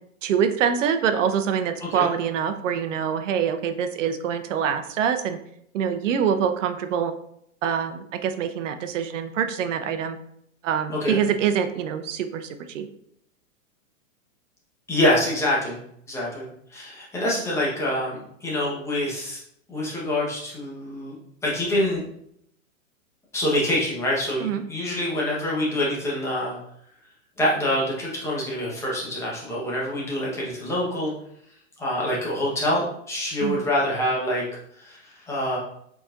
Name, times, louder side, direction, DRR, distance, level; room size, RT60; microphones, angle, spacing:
voice 1, 0.2-5.4 5.7-7.1 7.6-10.2 10.6-12.9 24.4-24.6 33.4-33.6, right 8 dB, 65° right, 8 dB, 0.7 m, -25 dB
voice 2, 14.9-15.8 16.1-19.4 19.7-21.1 21.4-22.0 23.3-26.6 27.4-31.1 31.8-34.4 34.8-35.6, left 1 dB, 5° left, -5 dB, 1.0 m, -26 dB
4.7 x 4.0 x 2.5 m, 0.72 s
hypercardioid pair, 150°, 40 cm